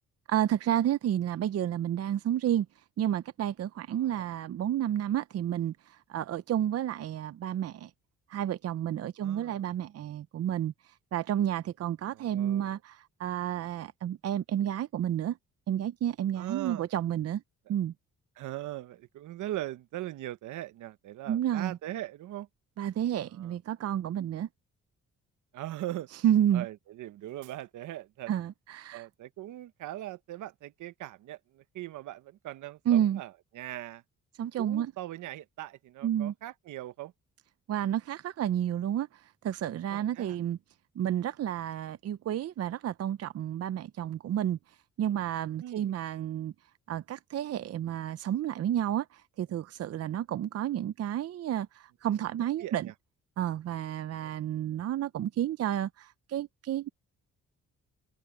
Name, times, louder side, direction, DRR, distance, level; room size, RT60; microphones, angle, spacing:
voice 1, 0.3-2.7 3.0-7.9 8.3-10.7 11.1-15.4 15.7-17.4 17.7-17.9 21.3-21.8 22.8-24.5 26.2-26.7 28.3-29.1 32.9-33.2 34.4-34.9 36.0-36.3 37.7-40.6 41.0-44.6 45.0-46.5 46.9-52.9 53.4-56.9, right 11 dB, 55° right, 0.7 m, -30 dB
voice 2, 9.2-9.7 12.1-12.8 16.4-16.8 18.4-22.5 23.3-23.5 25.5-26.1 26.5-28.3 28.9-34.0 34.6-37.1 39.9-40.4 45.6-45.9 52.6-52.9 54.2-54.3, right 14 dB, 80° right, 1.0 m, -40 dB
cardioid pair, 90°, 30 cm